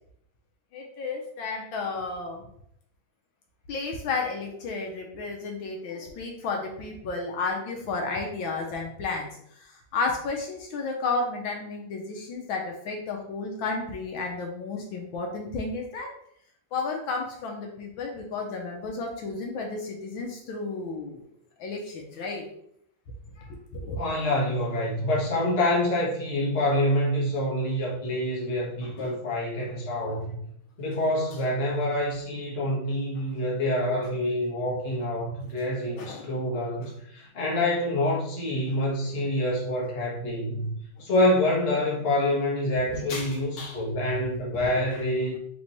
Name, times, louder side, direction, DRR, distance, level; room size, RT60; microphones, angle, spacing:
voice 1, 0.7-2.5 3.7-9.3 9.9-16.1 16.7-21.2 21.6-22.5 23.4-23.5 23.7-24.0 28.8-29.2 36.0-36.3 38.7-38.8 41.0-41.1 42.9-43.8, left 3 dB, 75° left, 1 dB, 1.5 m, -32 dB
voice 2, 24.0-30.4 30.8-40.7 41.0-45.4, left 1 dB, 35° left, -5 dB, 1.2 m, -26 dB
3.4 x 3.3 x 4.0 m, 0.70 s
omnidirectional pair, 2.3 m